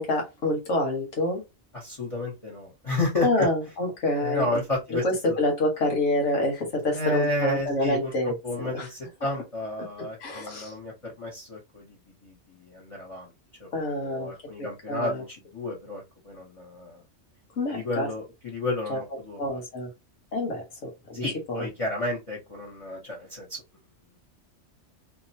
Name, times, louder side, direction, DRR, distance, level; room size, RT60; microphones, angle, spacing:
voice 1, 0.0-1.4 3.2-4.6 4.9-8.9 10.0-10.7 13.7-14.3 14.6-15.2 17.6-18.1 18.9-19.0 19.4-19.9 20.3-21.6, left 1 dB, 90° left, 1.6 m, -27 dB
voice 2, 1.7-3.5 4.2-5.4 6.9-8.1 8.4-13.3 13.6-13.7 14.0-17.0 17.7-19.6 21.2-23.6, left 1 dB, 30° left, 1.1 m, -32 dB
3.0 x 2.6 x 2.7 m
omnidirectional pair, 1.2 m